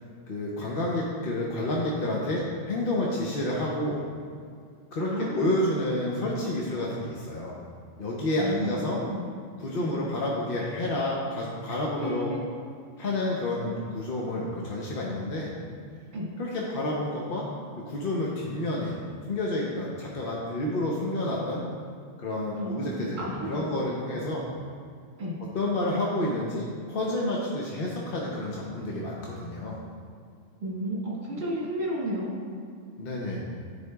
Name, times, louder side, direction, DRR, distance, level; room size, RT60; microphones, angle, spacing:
voice 1, 0.3-4.0 4.9-7.6 8.0-9.0 9.6-12.3 13.0-15.5 16.4-17.5 17.8-19.0 19.3-21.6 22.2-24.5 25.5-29.8 33.0-33.4, left 1 dB, 50° left, -4 dB, 0.9 m, -29 dB
voice 2, 5.0-5.6 8.4-9.2 9.8-9.9 12.0-12.4 16.1-16.3 22.6-23.6 25.2-25.4 30.6-32.3, equal, 55° right, -6 dB, 2.1 m, -32 dB
12.0 x 4.6 x 2.3 m, 2.2 s
omnidirectional pair, 1.3 m